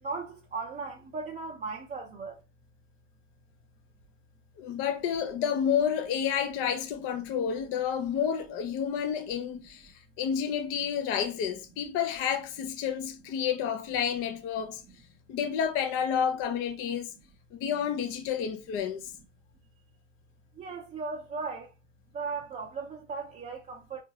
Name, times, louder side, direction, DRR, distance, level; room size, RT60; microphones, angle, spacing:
voice 1, 0.0-2.4 20.5-21.7 22.1-24.0, right 4 dB, 20° right, 0.6 m, -37 dB
voice 2, 4.6-14.8 15.3-17.1 17.5-19.1, left 8 dB, 35° left, 0.5 m, -30 dB
3.5 x 2.5 x 2.7 m
hypercardioid pair, 95°, 38 cm